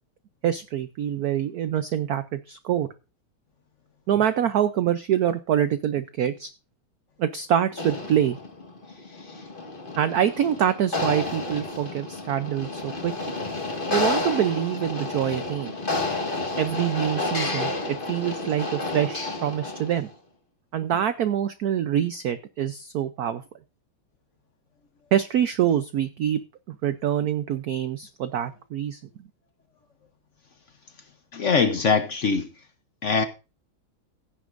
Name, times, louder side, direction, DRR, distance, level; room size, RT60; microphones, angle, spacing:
voice 1, 0.4-2.9 4.1-6.5 7.2-8.4 10.0-13.4 13.9-15.7 16.6-20.1 20.7-23.4 25.1-26.4 26.7-29.0, right 10 dB, 70° right, 0.9 m, -25 dB
sound 1, 7.7-20.1, left 2 dB, 25° left, 1.9 m, -31 dB
voice 2, 31.3-32.5 33.0-33.2, left 5 dB, 60° left, 0.7 m, -22 dB
16.0 x 9.2 x 2.6 m
omnidirectional pair, 2.3 m